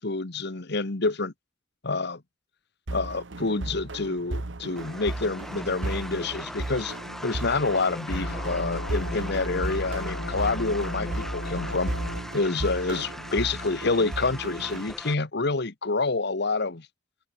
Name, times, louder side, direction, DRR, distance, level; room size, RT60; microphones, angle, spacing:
voice 1, 0.0-1.3 1.8-2.2 2.9-6.9 7.2-11.9 12.3-16.9, left 3 dB, 65° left, 1.4 m, -27 dB
sound 1, 2.9-14.9, right 2 dB, 80° right, 1.4 m, -36 dB
sound 2, 4.8-15.1, equal, ahead, 2.2 m, -40 dB
sound 3, 8.1-12.2, left 1 dB, 90° left, 3.9 m, -34 dB
head